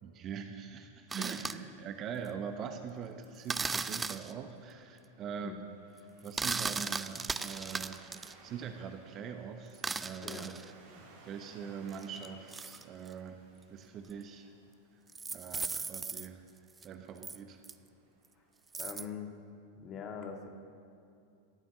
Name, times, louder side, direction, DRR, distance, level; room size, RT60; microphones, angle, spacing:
voice 1, 0.0-8.0 8.4-10.6 11.2-14.5 15.3-16.4 16.8-17.6, right 7 dB, 30° right, 7 dB, 1.0 m, -43 dB
sound 1, 1.1-1.5 3.5-4.3 6.2-8.3 9.7-10.7 11.9-13.1 14.1-14.2 15.1-16.3 16.8-16.9 17.2-17.4 17.6-17.7 18.7-19.1, right 4 dB, 15° right, 0.5 m, -37 dB
Waves surf, 1.3-19.1, right 3 dB, 55° right, 3.5 m, -62 dB
voice 2, 5.3-5.6 10.2-10.6 18.7-19.3 19.8-20.5, left 6 dB, 30° left, 4 dB, 1.9 m, -43 dB
17.5 x 9.3 x 7.4 m, 2.5 s
figure-of-eight pair, 90°, 0 cm